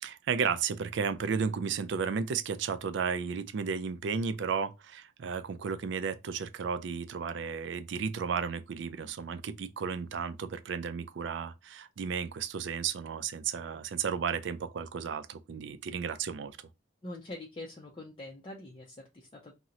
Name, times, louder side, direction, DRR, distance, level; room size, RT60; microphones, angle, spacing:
voice 1, 0.0-16.6, right 6 dB, 65° right, 0.3 m, -33 dB
voice 2, 17.0-19.5, left 2 dB, 25° left, 0.4 m, -44 dB
2.8 x 2.0 x 3.6 m
head